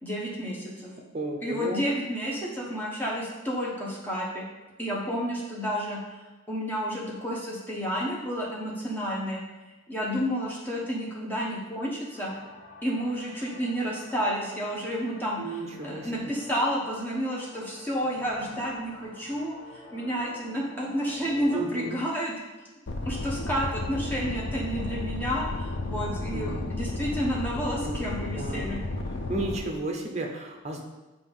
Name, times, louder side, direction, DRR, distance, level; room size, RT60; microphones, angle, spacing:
voice 1, 0.0-0.9 1.4-4.4 4.8-6.2 6.5-9.4 9.9-12.3 12.8-22.3 23.0-28.8, equal, 10° left, -5 dB, 1.1 m, -30 dB
voice 2, 1.1-1.8 15.4-16.3 21.5-22.0 26.3-26.6 27.8-28.7 29.3-30.8, right 2 dB, 30° right, 2 dB, 0.7 m, -33 dB
sound 1, 12.1-22.0, left 2 dB, 30° left, 1.4 m, -49 dB
sound 2, 22.9-29.6, left 2 dB, 55° left, 0.5 m, -33 dB
6.7 x 2.7 x 5.3 m, 1.1 s
head